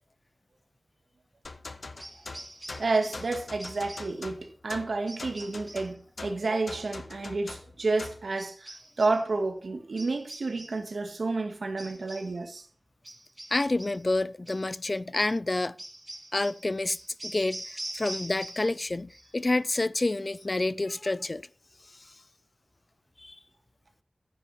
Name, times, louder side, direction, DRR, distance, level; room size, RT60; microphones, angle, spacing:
sound 1, 1.4-8.3, left 3 dB, 70° left, 1.0 m, -43 dB
sound 2, 2.0-3.3 3.6-4.2 5.1-5.9 8.4-9.2 10.0-10.9 11.8-12.4 13.0-14.1 14.5-14.7 15.8-18.8 19.1-19.6, right 1 dB, 30° right, 1.2 m, -44 dB
voice 1, 2.8-8.7 9.0-12.6, right 3 dB, 85° right, 1.8 m, -30 dB
voice 2, 13.5-15.7 16.3-17.0 17.2-21.5 23.2-23.4, left 2 dB, 45° left, 0.5 m, -28 dB
10.0 x 9.5 x 4.3 m
wide cardioid pair, 60°, 0 cm